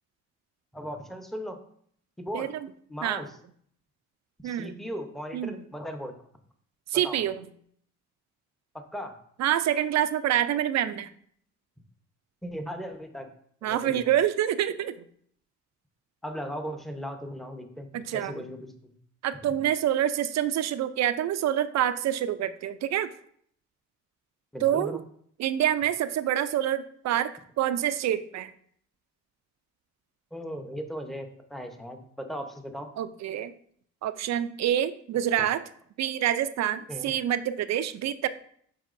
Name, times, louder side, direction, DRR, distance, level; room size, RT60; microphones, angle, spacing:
voice 1, 0.7-1.6 2.2-2.5 2.9-3.3 4.4-6.1 6.9-7.2 8.9-9.1 12.4-13.3 13.6-14.1 16.2-19.0 19.4-19.5 24.5-25.0 30.3-32.9 36.9-37.1, equal, ahead, 5 dB, 0.8 m, -37 dB
voice 2, 6.9-7.4 9.4-11.1 13.6-14.9 17.9-18.4 19.2-23.1 24.6-25.0 25.4-28.5 33.0-33.5 34.0-35.6 36.0-38.3, right 11 dB, 60° right, 13 dB, 0.5 m, -27 dB
8.1 x 4.7 x 2.6 m, 0.63 s
cardioid pair, 90°, 30 cm